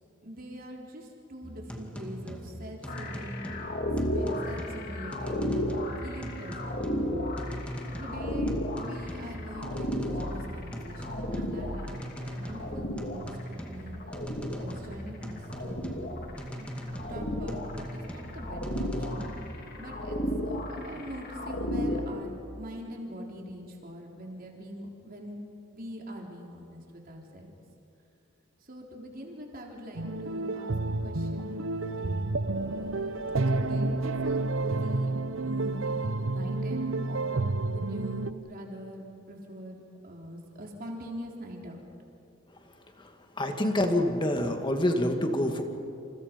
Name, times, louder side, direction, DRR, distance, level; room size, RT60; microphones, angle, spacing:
voice 1, 0.2-3.6 4.0-6.7 8.0-14.0 14.4-16.0 16.5-16.7 17.1-19.3 19.8-25.4 25.7-27.5 28.7-30.7 31.0-31.6 32.0-32.3 33.5-35.1 35.4-41.8, equal, 45° right, 0 dB, 3.9 m, -43 dB
sound 1, 1.4-19.6, equal, 5° left, 2.3 m, -40 dB
sound 2, 2.9-22.0, left 1 dB, 50° left, 3.1 m, -34 dB
sound 3, 30.0-38.3, right 2 dB, 80° right, 1.0 m, -30 dB
voice 2, 43.4-45.6, left 1 dB, 25° left, 4 dB, 2.3 m, -26 dB
29.0 x 29.0 x 5.4 m, 2.8 s
head